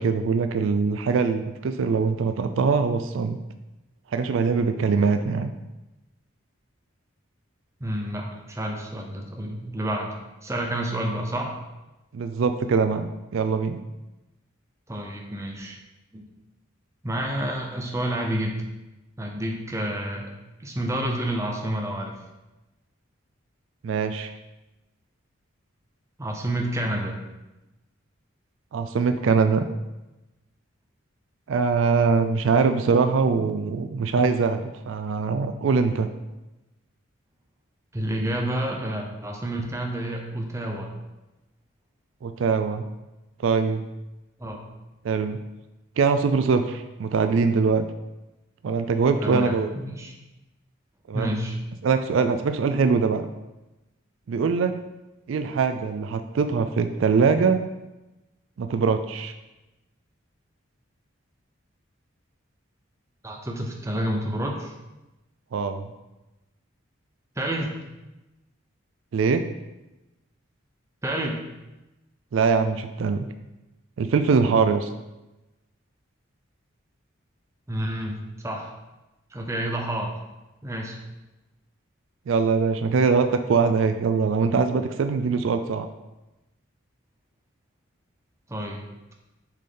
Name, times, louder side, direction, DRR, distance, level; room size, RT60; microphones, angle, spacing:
voice 1, 0.0-3.4 4.1-5.5 12.1-13.8 23.8-24.3 28.7-29.6 31.5-36.1 42.2-42.8 43.4-43.8 45.0-45.4 46.0-47.9 48.6-49.7 51.1-51.4 51.8-53.3 54.3-54.7 55.3-57.6 58.6-59.3 65.5-65.9 69.1-69.4 72.3-73.3 74.0-74.9 82.3-85.9, right 5 dB, 70° right, 8 dB, 0.3 m, -22 dB
voice 2, 7.8-10.1 10.4-11.6 14.9-15.8 16.1-16.2 17.0-18.6 19.2-20.3 20.6-22.1 26.2-27.2 37.9-40.9 44.4-44.7 49.2-50.1 51.1-51.6 63.2-64.7 67.4-67.8 71.0-71.4 77.7-78.2 78.4-78.7 79.3-80.1 80.6-81.0 88.5-88.8, right 1 dB, 15° right, 1 dB, 0.7 m, -29 dB
6.2 x 4.3 x 3.8 m, 1.0 s
head